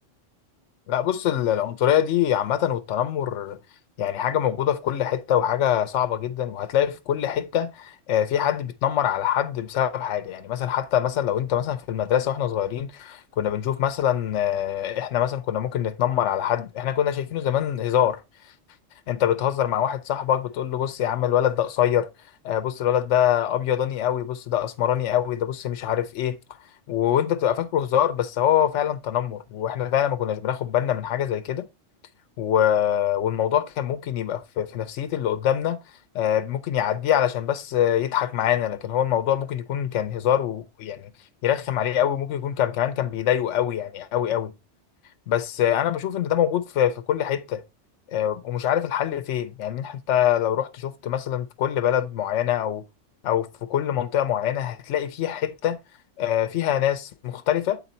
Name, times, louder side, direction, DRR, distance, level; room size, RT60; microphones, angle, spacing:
voice 1, 0.9-3.6 4.0-18.2 19.1-22.1 22.4-26.4 26.9-31.7 32.4-35.8 36.1-41.1 41.4-44.5 45.3-47.6 48.1-52.8 53.2-55.8 56.2-57.8, left 10 dB, 70° left, 0.9 m, -24 dB
8.1 x 4.0 x 4.1 m
omnidirectional pair, 1.3 m